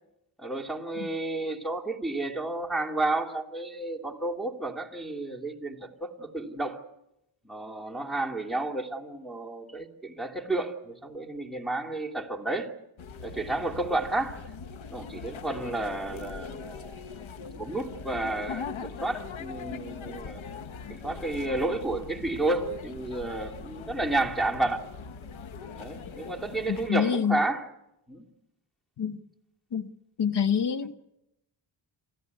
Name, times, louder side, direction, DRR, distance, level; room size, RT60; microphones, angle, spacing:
voice 1, 0.4-6.8 7.4-12.7 13.2-14.5 14.9-17.1 17.5-20.4 20.9-24.8 25.7-27.7 28.1-28.3, right 2 dB, ahead, -1 dB, 2.8 m, -31 dB
sound 1, 13.0-26.9, left 6 dB, 80° left, 1.4 m, -41 dB
voice 2, 26.7-27.4 29.0-29.2 29.7-29.9 30.2-30.9, left 8 dB, 60° left, 11 dB, 1.4 m, -26 dB
27.5 x 14.5 x 9.6 m, 0.87 s
cardioid pair, 90°, 46 cm